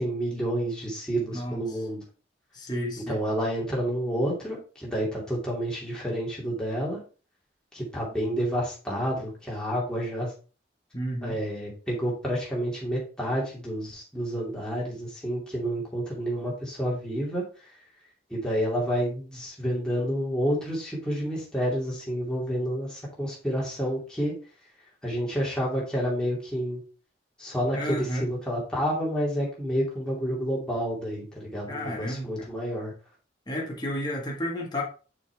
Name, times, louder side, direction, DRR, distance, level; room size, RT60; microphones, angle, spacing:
voice 1, 0.0-2.0 3.1-7.0 7.7-10.3 11.2-17.4 18.3-24.3 25.0-26.8 27.4-32.9, equal, 5° left, -5 dB, 2.7 m, -29 dB
voice 2, 1.3-1.6 2.5-3.2 10.9-11.3 27.7-28.3 31.7-32.5 33.5-34.8, equal, 25° left, -1 dB, 1.7 m, -32 dB
6.3 x 5.6 x 3.5 m, 0.35 s
head